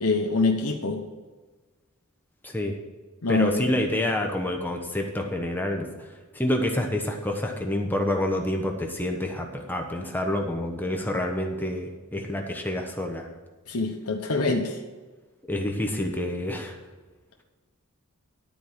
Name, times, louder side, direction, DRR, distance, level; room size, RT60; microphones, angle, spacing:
voice 1, 0.0-1.0 3.2-3.8 13.7-14.8, left 3 dB, 80° left, 1 dB, 1.0 m, -25 dB
voice 2, 2.4-2.8 3.3-13.3 15.5-16.8, left 1 dB, 10° left, 2 dB, 1.0 m, -28 dB
12.0 x 4.7 x 7.2 m, 1.3 s
head